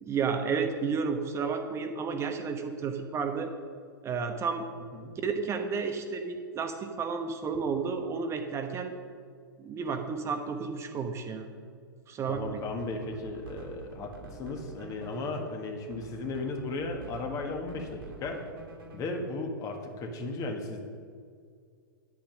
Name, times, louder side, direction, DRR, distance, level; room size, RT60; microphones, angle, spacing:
voice 1, 0.0-3.5 4.0-4.6 5.2-8.9 9.6-11.5 12.1-12.6, right 5 dB, 20° right, 5 dB, 1.0 m, -32 dB
voice 2, 12.3-18.4 18.9-20.8, left 3 dB, 30° left, 3 dB, 1.6 m, -35 dB
sound 1, 12.3-19.3, right 4 dB, 70° right, 2.5 m, -48 dB
10.5 x 8.6 x 6.3 m, 2.2 s
figure-of-eight pair, 110°, 12 cm